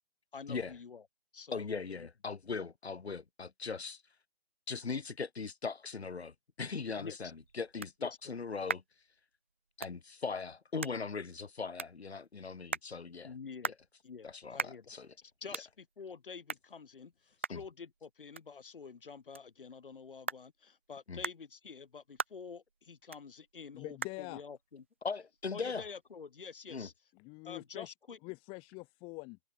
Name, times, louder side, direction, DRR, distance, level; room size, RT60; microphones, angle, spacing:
voice 1, 0.3-1.1 1.3-2.1 7.0-7.3 8.0-8.2 13.2-13.8 14.0-24.8 25.5-26.9 27.4-28.2, left 5 dB, 55° left, 5.4 m, -48 dB
voice 2, 1.5-4.0 4.7-8.8 9.8-13.3 13.7-13.8 14.2-15.1 17.5-17.6 21.1-21.2 25.0-25.8 26.7-26.9, left 5 dB, 80° left, 0.9 m, -39 dB
sound 1, 6.9-26.2, right 5 dB, 15° right, 0.4 m, -45 dB
voice 3, 23.7-24.4 27.1-27.9 28.2-29.4, left 29 dB, 15° left, 1.7 m, -45 dB
figure-of-eight pair, 140°, 31 cm